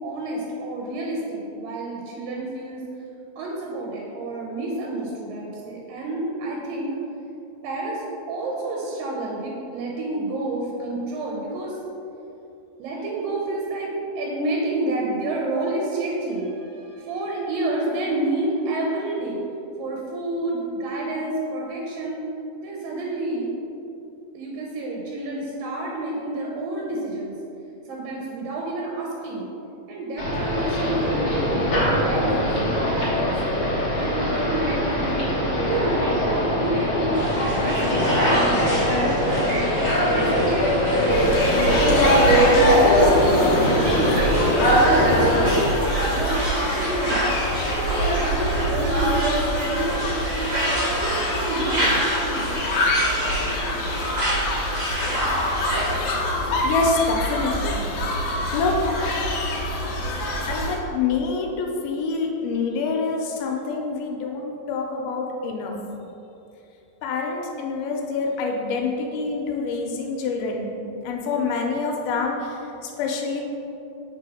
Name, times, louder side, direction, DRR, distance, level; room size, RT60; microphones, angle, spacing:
voice 1, 0.0-2.9 3.4-7.0 7.6-11.8 12.8-19.4 19.8-22.2 22.6-23.5 24.3-27.4 27.9-29.5 29.9-33.4 33.9-37.2 37.6-38.5 39.0-39.7 40.1-40.7 41.9-45.7 46.1-47.2 47.7-50.1 50.7-52.6, right 2 dB, 80° right, -2 dB, 2.4 m, -29 dB
sound 1, 30.2-45.6, equal, 50° left, 1.9 m, -21 dB
sound 2, 37.1-55.9, equal, 55° right, 1.1 m, -28 dB
sound 3, 41.1-60.7, left 1 dB, 65° left, 2.0 m, -26 dB
voice 2, 56.6-58.1 58.5-58.8 60.5-65.8 67.0-70.7 71.0-73.4, left 4 dB, 85° left, 1 dB, 2.5 m, -26 dB
7.4 x 3.5 x 4.8 m, 2.8 s
omnidirectional pair, 4.3 m